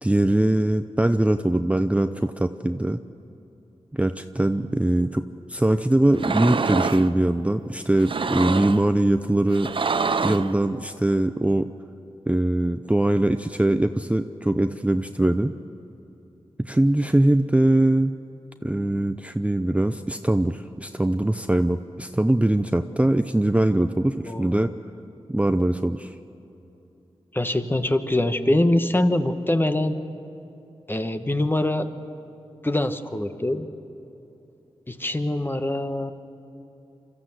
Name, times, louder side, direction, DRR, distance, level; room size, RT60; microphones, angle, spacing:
voice 1, 0.0-3.0 3.9-9.7 10.2-11.7 12.3-15.5 16.6-18.1 18.6-24.7 25.3-26.1, right 1 dB, 10° right, 9 dB, 0.6 m, -22 dB
sound 1, 6.1-7.1 8.0-8.8 9.5-10.5, right 4 dB, 50° right, 0.7 m, -26 dB
voice 2, 24.2-24.7 27.3-30.0 30.9-31.9 32.6-33.7 34.9-36.1, left 1 dB, 20° left, 9 dB, 1.2 m, -23 dB
25.0 x 13.5 x 7.9 m, 2.9 s
cardioid pair, 45°, 11 cm